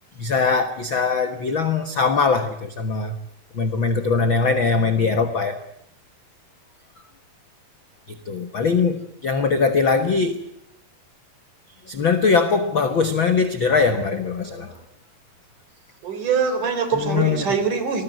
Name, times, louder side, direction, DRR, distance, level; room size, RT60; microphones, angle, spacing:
voice 1, 0.2-3.2 3.5-5.6 8.1-10.4 11.8-14.8 16.9-17.5, left 4 dB, 65° left, 10 dB, 1.2 m, -21 dB
voice 2, 16.0-18.0, right 5 dB, 55° right, 9 dB, 5.1 m, -23 dB
27.0 x 20.5 x 9.3 m, 0.73 s
omnidirectional pair, 4.5 m